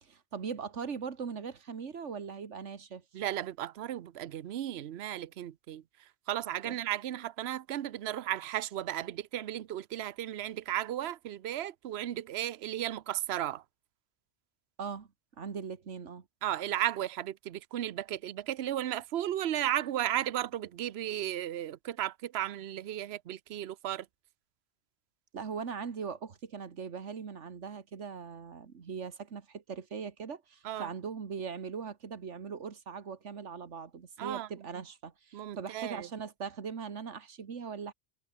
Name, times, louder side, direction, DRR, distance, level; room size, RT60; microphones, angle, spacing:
voice 1, 0.0-3.0 6.6-6.8 14.8-15.1 15.4-16.2 25.3-37.9, right 6 dB, 90° right, 1.9 m, -40 dB
voice 2, 3.1-5.8 6.3-13.6 16.4-24.1 30.6-30.9 34.2-34.5 35.3-36.1, right 12 dB, 65° right, 1.0 m, -34 dB
omnidirectional pair, 1.2 m